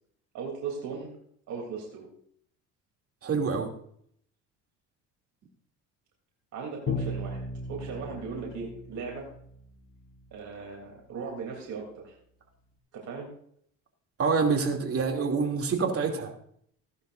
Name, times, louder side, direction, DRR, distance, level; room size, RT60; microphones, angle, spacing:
voice 1, 0.3-1.1 1.5-2.1 6.5-9.3 10.3-12.2 12.9-13.3, right 5 dB, 60° right, -1 dB, 3.3 m, -38 dB
voice 2, 3.2-3.7 14.2-16.3, right 5 dB, 40° right, 2 dB, 2.8 m, -26 dB
Bowed string instrument, 6.9-9.7, left 2 dB, 40° left, 1.4 m, -36 dB
15.0 x 12.0 x 2.6 m, 0.66 s
supercardioid pair, 85°, 34 cm